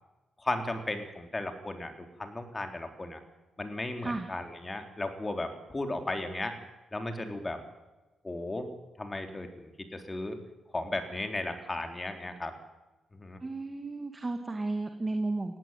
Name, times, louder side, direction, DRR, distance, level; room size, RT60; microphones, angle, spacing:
voice 1, 0.4-3.2 3.6-6.5 6.9-7.6 8.2-8.7 9.0-10.4 10.7-12.5 13.1-13.4, left 2 dB, 25° left, 6 dB, 3.5 m, -35 dB
voice 2, 13.4-15.6, right 2 dB, 25° right, 5 dB, 2.1 m, -33 dB
19.0 x 15.0 x 9.3 m, 1.1 s
supercardioid pair, 65°, 0 cm